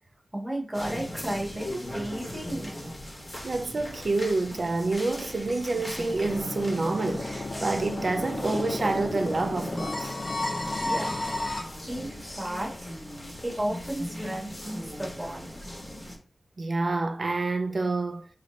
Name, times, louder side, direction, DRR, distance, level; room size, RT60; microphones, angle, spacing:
voice 1, 0.3-2.7 10.8-11.1 11.9-12.9 13.4-15.6, right 1 dB, 15° right, 1.4 m, -33 dB
sound 1, 0.7-16.2, left 1 dB, 15° left, 1.1 m, -39 dB
voice 2, 3.4-10.2 16.6-18.3, right 3 dB, 55° right, 0.4 m, -28 dB
sound 2, 6.3-11.6, left 2 dB, 35° left, 0.6 m, -32 dB
4.0 x 2.5 x 3.2 m
wide cardioid pair, 75°, 0 cm